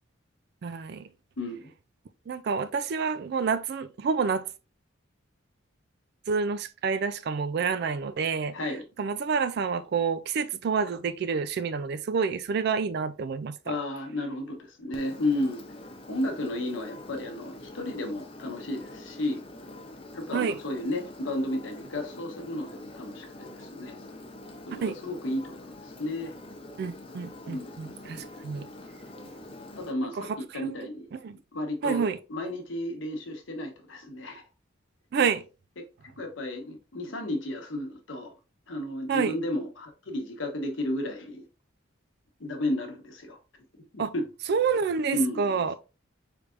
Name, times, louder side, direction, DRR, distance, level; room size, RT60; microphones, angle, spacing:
voice 1, 0.6-1.1 2.3-4.5 6.3-8.5 9.0-13.8 20.3-20.6 24.8-25.0 26.8-28.7 30.2-30.8 31.1-31.4 31.8-32.2 35.1-35.4 39.1-39.3 44.0-44.1 44.5-45.7, right 5 dB, 50° right, 0.3 m, -28 dB
voice 2, 1.4-1.7 8.5-8.8 13.6-15.6 16.1-19.4 20.1-24.0 24.7-25.6 25.8-26.3 27.5-27.7 29.7-31.1 31.5-32.0 32.3-34.4 36.2-38.3 38.7-41.5 42.4-43.4 43.8-44.3 45.1-45.8, left 1 dB, 70° left, 1.0 m, -33 dB
Engine, 14.9-29.9, left 1 dB, 25° left, 0.5 m, -45 dB
4.7 x 3.3 x 2.5 m
head